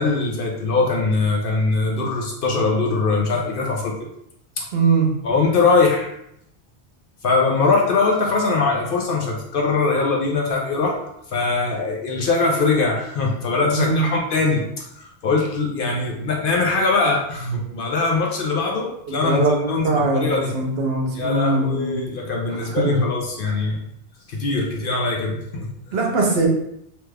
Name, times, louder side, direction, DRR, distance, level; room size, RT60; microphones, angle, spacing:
voice 1, 0.0-4.1 4.6-4.7 5.2-6.1 7.2-10.9 11.3-14.6 15.0-20.5 21.1-23.8 24.3-26.0, left 3 dB, 60° left, 0 dB, 0.7 m, -21 dB
voice 2, 4.7-5.1 13.7-14.0 19.1-22.0 22.7-23.0 25.9-26.5, right 3 dB, 70° right, 0 dB, 0.9 m, -21 dB
2.9 x 2.3 x 3.3 m, 0.75 s
omnidirectional pair, 1.1 m